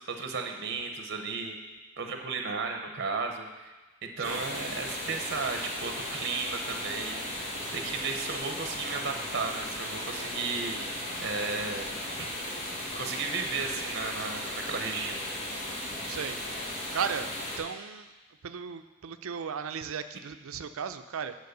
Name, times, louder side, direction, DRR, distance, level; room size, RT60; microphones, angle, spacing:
voice 1, 0.0-1.6 2.0-3.7 4.0-7.3 7.7-11.9 12.2-12.3 12.9-15.3, right 4 dB, 50° right, 4 dB, 0.8 m, -34 dB
sound 1, 4.2-17.6, left 1 dB, 30° left, 1.5 m, -36 dB
voice 2, 16.1-16.4 16.9-17.3 17.6-18.1 18.4-21.4, right 7 dB, 85° right, 10 dB, 0.5 m, -35 dB
9.4 x 4.6 x 6.6 m, 1.2 s
head